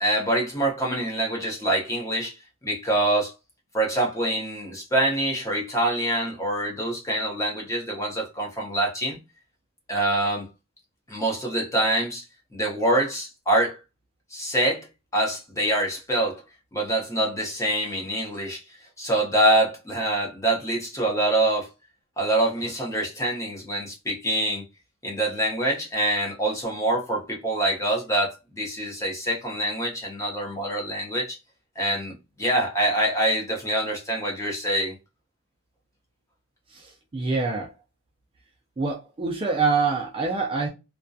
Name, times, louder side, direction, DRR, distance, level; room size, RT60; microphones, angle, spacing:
voice 1, 0.0-2.3 2.6-3.3 3.7-9.2 9.9-10.4 11.1-12.2 12.5-13.8 14.3-14.8 15.1-16.4 16.7-18.6 19.0-21.7 22.2-24.6 25.0-31.4 31.8-35.0, right 1 dB, 15° left, 0.7 m, -25 dB
voice 2, 36.7-37.7 38.8-40.7, right 4 dB, 25° right, 0.3 m, -25 dB
2.3 x 2.1 x 2.6 m
head